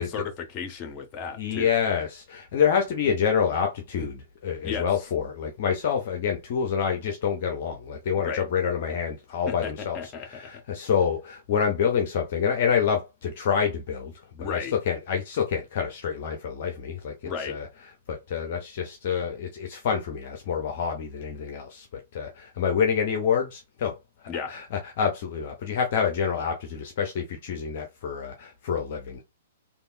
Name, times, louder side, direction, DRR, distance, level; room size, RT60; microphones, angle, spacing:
voice 1, 0.0-1.7 4.6-4.9 8.2-8.4 9.5-10.4 14.4-14.7 17.2-17.5 24.3-24.5, left 6 dB, 30° left, 1.0 m, -34 dB
voice 2, 1.4-17.7 18.1-24.0 24.5-29.2, left 7 dB, 50° left, 0.7 m, -27 dB
3.4 x 2.5 x 2.5 m
figure-of-eight pair, 110°, 0 cm